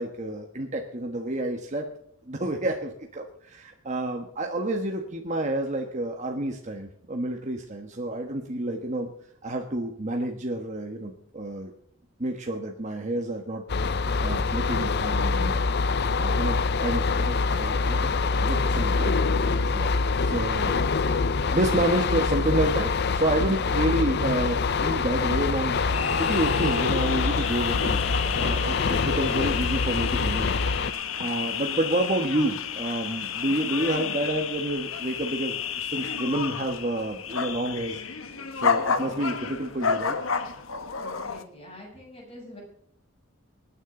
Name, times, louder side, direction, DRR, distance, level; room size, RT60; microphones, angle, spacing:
voice 1, 0.0-1.9 2.3-9.1 9.4-11.7 12.2-13.6 13.9-15.6 16.2-18.1 18.4-19.2 19.4-19.9 20.2-20.9 21.4-25.8 26.2-28.0 28.4-38.0 38.5-40.2, right 1 dB, 35° right, 2 dB, 1.3 m, -29 dB
sound 1, 13.7-30.9, left 4 dB, 55° left, 0.6 m, -25 dB
sound 2, 25.7-41.4, left 6 dB, 85° left, 1.2 m, -30 dB
voice 2, 41.0-42.6, left 1 dB, 30° left, -2 dB, 8.0 m, -45 dB
25.0 x 10.0 x 3.9 m, 0.69 s
head